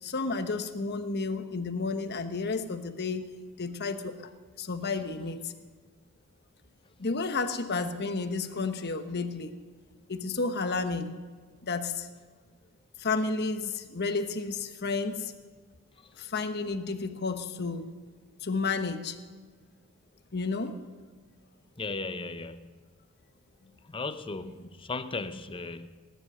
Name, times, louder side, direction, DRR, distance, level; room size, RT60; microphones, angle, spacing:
voice 1, 0.0-3.3 3.6-4.3 4.6-5.5 7.0-9.5 10.1-11.1 11.6-12.1 13.0-15.3 16.2-17.9 18.4-19.2 20.3-20.8, left 4 dB, 50° left, 8 dB, 1.1 m, -31 dB
voice 2, 21.8-22.7 23.9-25.9, left 3 dB, 25° left, 11 dB, 0.7 m, -36 dB
19.0 x 10.5 x 6.6 m, 1.5 s
head